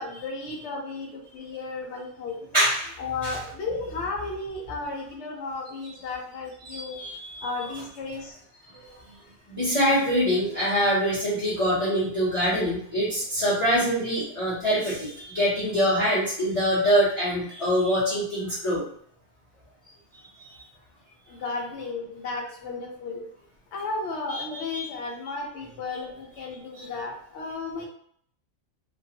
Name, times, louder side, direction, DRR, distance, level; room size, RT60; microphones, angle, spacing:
voice 1, 0.0-2.4 3.0-7.0 7.4-8.4 21.3-23.2 23.7-27.8, left 3 dB, 60° left, 0 dB, 0.9 m, -34 dB
voice 2, 2.5-3.0 3.2-3.4 6.6-7.4 8.7-8.8 9.5-18.8 20.5-20.6 24.3-24.4 24.7-24.9 26.8-26.9, equal, 25° left, -10 dB, 0.9 m, -24 dB
2.5 x 2.2 x 2.7 m, 0.64 s
omnidirectional pair, 1.4 m